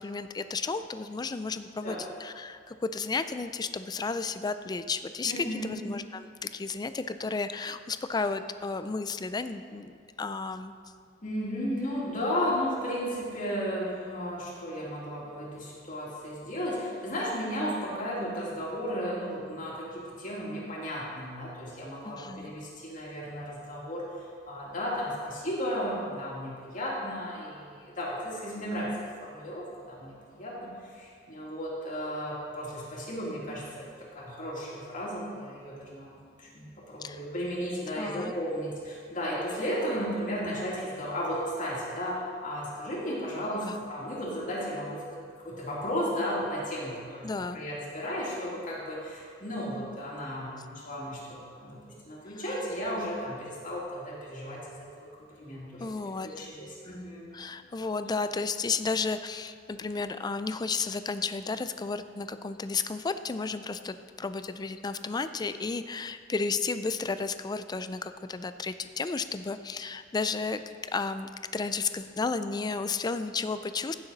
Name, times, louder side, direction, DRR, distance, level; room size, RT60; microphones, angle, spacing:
voice 1, 0.0-10.7 22.0-22.5 37.0-37.2 38.0-38.3 43.6-43.8 47.2-47.6 55.8-56.5 57.3-73.9, left 4 dB, 20° left, 11 dB, 0.4 m, -33 dB
voice 2, 5.2-5.8 11.2-24.0 24.4-28.9 29.2-30.1 30.4-30.6 30.8-45.1 45.4-55.1 55.4-55.9 56.2-57.3, equal, 45° left, -5 dB, 2.6 m, -34 dB
15.5 x 6.9 x 4.0 m, 2.1 s
head